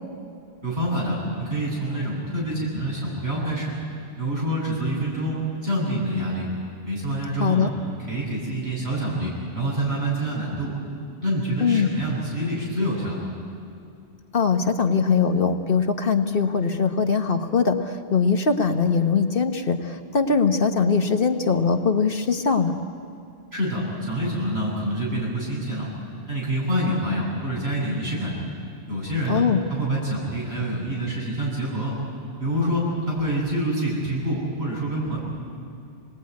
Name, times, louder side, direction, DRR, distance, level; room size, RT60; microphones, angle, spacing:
voice 1, 0.6-3.7 4.2-5.4 5.6-6.5 6.8-7.7 8.1-10.7 11.2-13.3 23.5-25.9 26.3-28.3 28.9-29.4 29.7-31.9 32.4-35.2, right 1 dB, 75° right, -6 dB, 8.4 m, -26 dB
voice 2, 7.4-7.7 11.6-11.9 14.3-22.7 29.3-29.6, left 5 dB, 60° left, 6 dB, 1.3 m, -21 dB
26.5 x 20.0 x 9.6 m, 2.4 s
omnidirectional pair, 1.1 m